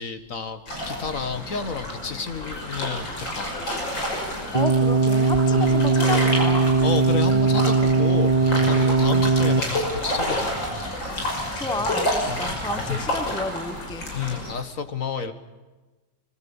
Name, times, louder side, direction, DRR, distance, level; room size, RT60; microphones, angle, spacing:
voice 1, 0.0-3.5 5.6-5.8 6.8-10.5 12.3-13.1 14.1-15.3, left 5 dB, 45° left, 10 dB, 1.7 m, -31 dB
sound 1, 0.7-14.5, left 1 dB, 75° left, 6.6 m, -30 dB
voice 2, 4.3-6.8 11.5-14.0, left 2 dB, 5° left, 11 dB, 0.8 m, -31 dB
sound 2, 4.5-9.6, right 4 dB, 65° right, 0.4 m, -19 dB
sound 3, 6.7-13.4, right 2 dB, 15° right, 1.2 m, -41 dB
25.0 x 22.5 x 7.1 m, 1.2 s
omnidirectional pair, 2.1 m